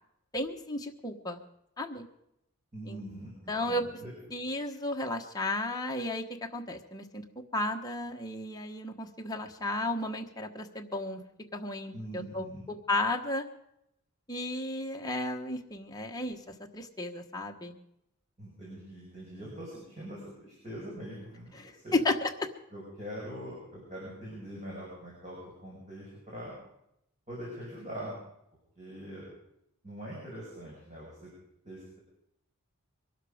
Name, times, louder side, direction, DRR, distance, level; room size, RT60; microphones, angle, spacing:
voice 1, 0.3-1.4 1.8-2.1 2.8-3.0 3.5-3.8 4.3-7.2 7.5-11.2 11.5-13.5 14.3-17.8 21.5-22.5, left 2 dB, 15° left, 2 dB, 1.2 m, -33 dB
voice 2, 2.7-4.1 11.9-12.6 18.4-22.0 22.7-26.5 27.3-28.2 28.8-29.3 29.8-31.3 31.6-32.0, equal, 35° right, -5 dB, 5.8 m, -43 dB
22.5 x 12.5 x 5.0 m, 0.80 s
head